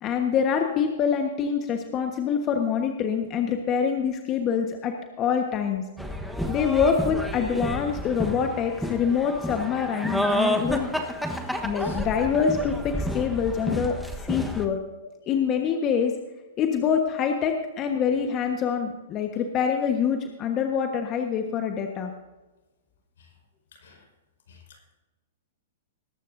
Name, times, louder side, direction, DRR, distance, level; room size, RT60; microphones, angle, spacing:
voice 1, 0.0-5.8 6.5-11.1 11.6-14.0 14.3-14.8 15.3-16.1 16.6-22.1, left 7 dB, 30° left, 4 dB, 1.3 m, -25 dB
sound 1, 6.0-14.6, equal, ahead, 1.2 m, -30 dB
voice 2, 23.7-24.1 24.5-25.0, left 5 dB, 75° left, 2 dB, 4.8 m, -51 dB
20.5 x 12.0 x 2.7 m, 1.1 s
hypercardioid pair, 130°, 0 cm